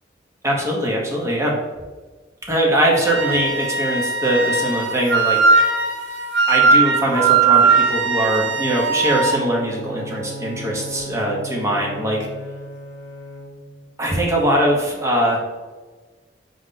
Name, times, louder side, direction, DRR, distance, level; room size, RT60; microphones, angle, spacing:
voice 1, 0.4-1.6 2.5-5.8 6.5-12.2 14.0-15.4, right 1 dB, 15° right, -2 dB, 0.8 m, -21 dB
Wind instrument woodwind instrument, 3.0-9.4, right 4 dB, 90° right, 0.6 m, -18 dB
Bowed string instrument, 9.0-13.9, right 1 dB, 70° left, 0.6 m, -35 dB
5.2 x 2.3 x 3.7 m, 1.3 s
head